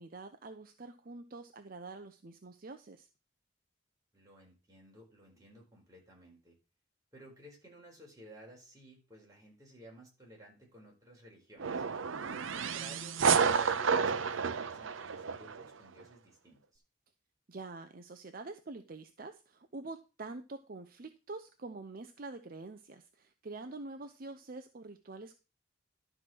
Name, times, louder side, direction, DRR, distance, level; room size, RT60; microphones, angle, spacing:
voice 1, 0.0-3.1 17.5-25.4, right 3 dB, 45° right, 8 dB, 0.7 m, -46 dB
voice 2, 4.1-6.6 7.1-11.8 12.2-16.8, right 1 dB, 20° right, -2 dB, 4.5 m, -55 dB
sound 1, 11.6-15.7, right 6 dB, 90° right, 0.7 m, -30 dB
12.0 x 4.5 x 6.1 m, 0.31 s
head